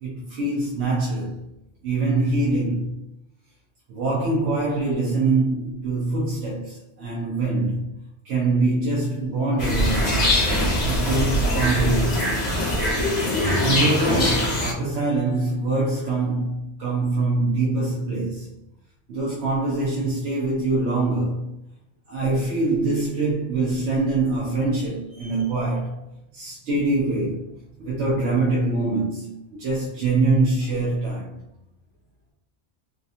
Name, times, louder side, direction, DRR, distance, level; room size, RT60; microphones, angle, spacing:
voice 1, 0.0-1.3 1.8-3.0 3.9-7.9 8.2-10.3 10.8-12.4 13.6-18.5 19.1-21.5 22.1-26.0 26.3-27.5 27.8-31.3, right 2 dB, 85° right, 1.0 m, -24 dB
sound 1, 9.6-14.7, left 1 dB, 65° left, 1.4 m, -22 dB
3.4 x 2.4 x 2.6 m
omnidirectional pair, 1.1 m